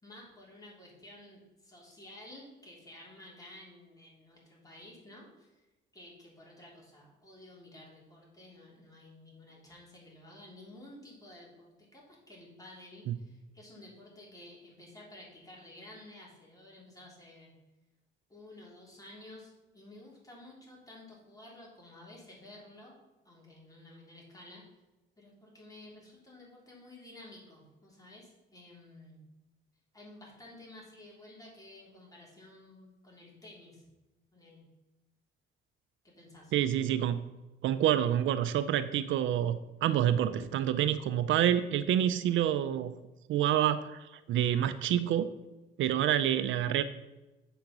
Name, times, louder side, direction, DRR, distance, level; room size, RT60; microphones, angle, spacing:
voice 1, 0.0-5.7 5.9-17.5 18.3-23.0 23.2-24.6 25.2-29.2 29.9-33.9 34.3-34.7 36.0-36.5, left 1 dB, 15° left, -3 dB, 3.4 m, -52 dB
voice 2, 36.5-37.3 37.6-42.9 43.3-45.3 45.8-46.8, right 11 dB, 75° right, 13 dB, 0.5 m, -28 dB
7.8 x 5.2 x 6.0 m, 1.1 s
cardioid pair, 90°, 20 cm